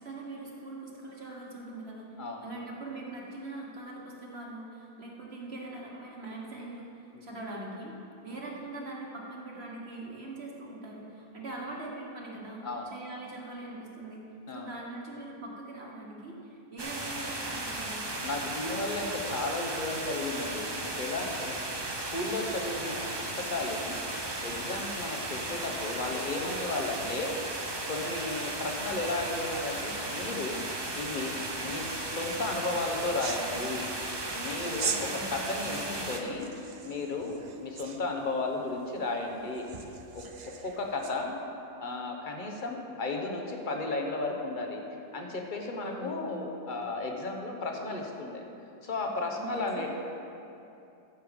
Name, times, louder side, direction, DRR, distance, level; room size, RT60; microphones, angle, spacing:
voice 1, 0.0-8.0 8.2-14.2 14.5-18.1 35.0-35.3 35.7-36.1 45.8-46.1 49.2-49.9, right 2 dB, 40° right, -3 dB, 1.6 m, -42 dB
sound 1, 16.8-36.2, right 2 dB, 25° right, 0.6 m, -36 dB
voice 2, 18.2-21.6 22.1-24.0 24.4-27.4 27.9-30.6 31.0-33.8 34.3-36.5 36.8-39.7 40.1-40.2 40.6-41.4 41.8-44.8 45.1-48.4 48.8-49.9, left 2 dB, 35° left, 2 dB, 1.1 m, -34 dB
sound 2, 31.5-41.2, right 5 dB, 90° right, 0.3 m, -42 dB
14.0 x 6.7 x 5.3 m, 2.7 s
omnidirectional pair, 1.7 m